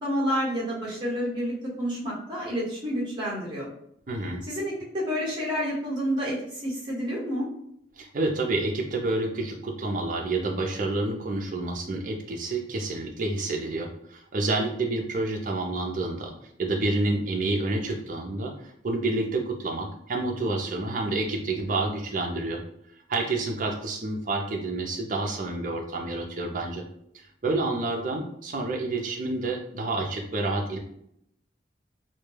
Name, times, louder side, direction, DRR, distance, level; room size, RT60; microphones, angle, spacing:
voice 1, 0.0-3.7 4.5-7.4, equal, 25° right, -7 dB, 0.9 m, -29 dB
voice 2, 4.1-4.4 8.0-16.3 16.6-22.6 23.1-26.8 27.1-30.8, right 2 dB, 45° right, 2 dB, 0.4 m, -29 dB
2.2 x 2.1 x 3.1 m, 0.72 s
head